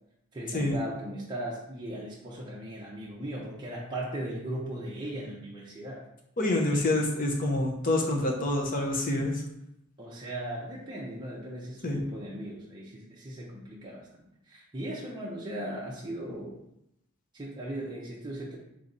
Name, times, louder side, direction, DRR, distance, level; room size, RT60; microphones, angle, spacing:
voice 1, 0.3-6.1 10.0-16.6 17.3-18.6, right 1 dB, 20° right, -5 dB, 0.6 m, -38 dB
voice 2, 6.4-9.4 11.8-12.0, left 1 dB, 40° left, 0 dB, 0.8 m, -27 dB
3.8 x 3.2 x 3.9 m, 0.80 s
head